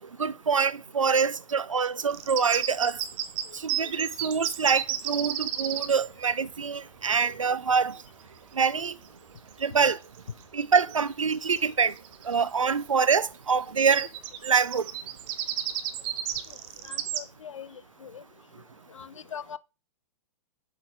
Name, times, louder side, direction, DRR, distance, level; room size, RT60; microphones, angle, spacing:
voice 1, 0.2-3.0 3.5-8.0 8.5-9.0 9.6-10.0 10.5-11.9 12.2-14.1 14.4-14.9, right 6 dB, 85° right, 0.5 m, -25 dB
sound 1, 2.1-6.1 9.5-9.7 10.2-10.6 10.9-11.0 11.3-12.4 13.8-17.2, right 11 dB, 35° right, 0.8 m, -33 dB
voice 2, 16.8-18.2 18.9-19.6, left 7 dB, 75° left, 0.5 m, -42 dB
7.7 x 3.9 x 4.6 m
figure-of-eight pair, 110°, 16 cm